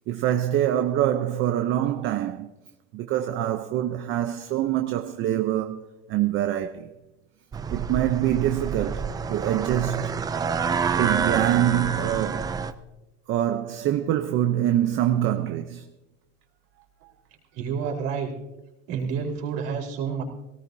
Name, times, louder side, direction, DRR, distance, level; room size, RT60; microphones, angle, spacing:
voice 1, 0.1-2.5 2.9-6.9 7.7-10.3 11.0-12.6 13.3-15.9, right 12 dB, 40° right, 0.7 m, -25 dB
sound 1, 7.5-12.7, right 5 dB, 15° right, 0.4 m, -28 dB
voice 2, 17.5-18.3 18.9-20.2, right 6 dB, 65° right, 4.2 m, -29 dB
20.0 x 18.0 x 2.7 m
cardioid pair, 155°, 30 cm